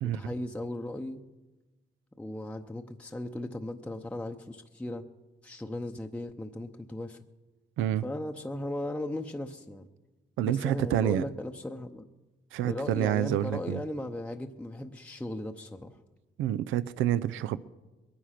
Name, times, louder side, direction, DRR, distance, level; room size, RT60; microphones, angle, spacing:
voice 1, 0.0-1.2 2.2-5.0 5.4-7.2 8.0-9.9 10.4-12.1 12.6-16.0, left 1 dB, 5° left, 0.7 m, -37 dB
voice 2, 10.4-11.2 12.5-13.8 16.4-17.6, right 12 dB, 85° right, 0.5 m, -28 dB
21.5 x 9.8 x 5.9 m
cardioid pair, 90°, 20 cm